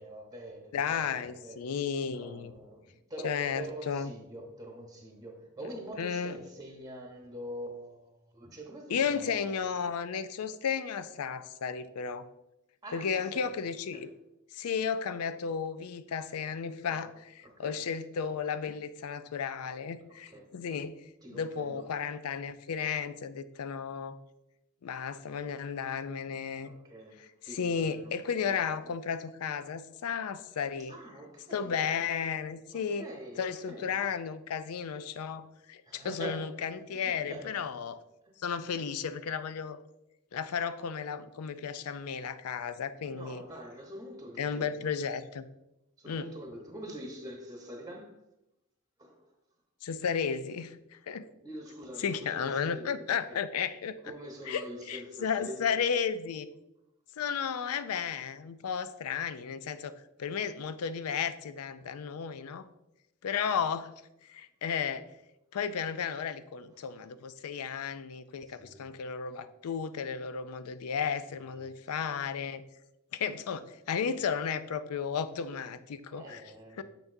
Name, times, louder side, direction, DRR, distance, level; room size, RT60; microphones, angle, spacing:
voice 1, 0.0-1.1 1.4-1.6 2.1-9.4 12.8-13.5 13.9-14.1 16.9-17.0 17.4-17.8 20.3-20.5 21.2-21.9 26.6-28.1 28.4-28.9 30.9-31.8 32.7-34.0 35.9-36.5 36.9-37.6 43.1-44.7 46.0-48.2 49.0-49.2 51.4-53.4 54.0-55.6 66.8-67.0 68.5-68.9 71.5-71.7 76.1-76.8, equal, 15° right, 1.0 m, -45 dB
voice 2, 0.7-2.5 3.2-4.1 6.0-6.4 8.9-12.3 12.9-14.1 14.5-21.0 21.3-24.2 24.8-26.7 27.2-31.0 31.5-33.1 33.4-38.0 38.4-39.8 40.3-43.4 44.4-45.4 46.1-46.3 49.8-50.8 51.1-51.3 52.0-54.1 54.5-56.5 57.2-59.9 60.2-62.7 63.2-63.9 64.3-65.1 65.5-72.6 73.1-76.4 76.8-76.9, left 6 dB, 85° left, 0.4 m, -34 dB
6.9 x 5.9 x 2.6 m
head